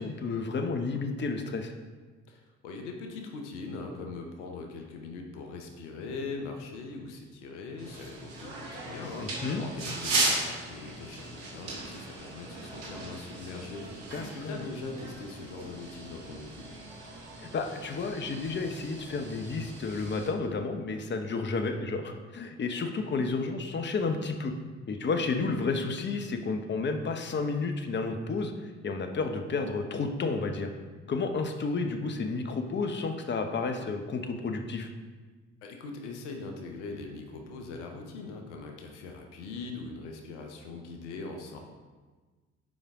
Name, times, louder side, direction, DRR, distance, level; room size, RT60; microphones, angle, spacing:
voice 1, 0.0-1.7 9.2-9.7 14.1-14.7 17.4-24.5 24.9-28.5 28.8-30.7 31.1-34.9, left 4 dB, 30° left, 5 dB, 0.8 m, -31 dB
voice 2, 2.3-16.7 35.6-41.6, left 3 dB, 85° left, 3 dB, 0.8 m, -41 dB
sound 1, 7.8-20.3, right 2 dB, 80° right, 1.4 m, -37 dB
7.3 x 5.0 x 3.5 m, 1.4 s
hypercardioid pair, 50°, 34 cm